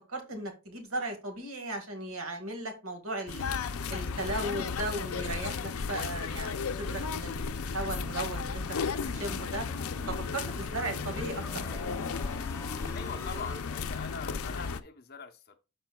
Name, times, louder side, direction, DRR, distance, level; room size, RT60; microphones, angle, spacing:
voice 1, 0.1-3.4 3.9-8.6 9.1-9.7 10.1-11.8, right 2 dB, 85° right, 1.9 m, -36 dB
sound 1, 3.3-14.8, left 5 dB, 90° left, 0.5 m, -34 dB
sound 2, 7.2-13.6, left 1 dB, 15° left, 0.6 m, -44 dB
voice 2, 12.9-15.5, left 5 dB, 45° left, 0.9 m, -42 dB
12.5 x 4.4 x 2.3 m
head